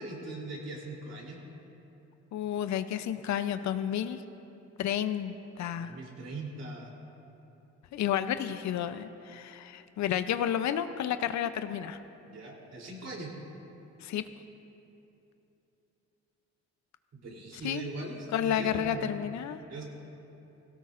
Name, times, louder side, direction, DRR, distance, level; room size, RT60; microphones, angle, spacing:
voice 1, 0.0-1.4 5.7-6.9 12.3-13.3 17.1-19.1 19.7-19.8, right 2 dB, 60° right, -2 dB, 3.2 m, -40 dB
voice 2, 2.3-4.2 4.8-6.0 7.9-12.0 14.0-14.2 17.6-17.9 18.3-19.6, left 10 dB, 70° left, 11 dB, 0.6 m, -31 dB
17.0 x 17.0 x 2.5 m, 3.0 s
cardioid pair, 90°, 30 cm